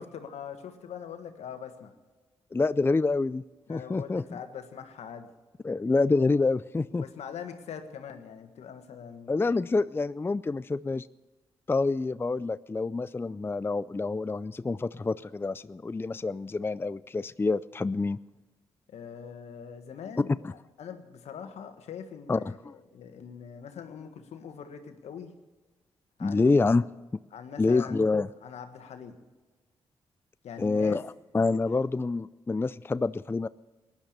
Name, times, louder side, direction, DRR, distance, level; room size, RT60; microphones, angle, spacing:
voice 1, 0.0-1.9 3.7-5.3 6.9-9.5 18.9-25.3 26.2-26.6 27.3-28.0 28.4-29.2 30.4-31.0, left 7 dB, 75° left, 7 dB, 1.6 m, -43 dB
voice 2, 2.5-3.4 3.7-4.4 5.6-7.0 9.3-11.1 11.7-18.2 20.4-20.5 22.3-22.7 26.2-26.9 27.6-28.3 30.6-33.5, left 3 dB, 20° left, 16 dB, 0.4 m, -27 dB
18.5 x 10.5 x 6.7 m, 1.2 s
supercardioid pair, 50°, 11 cm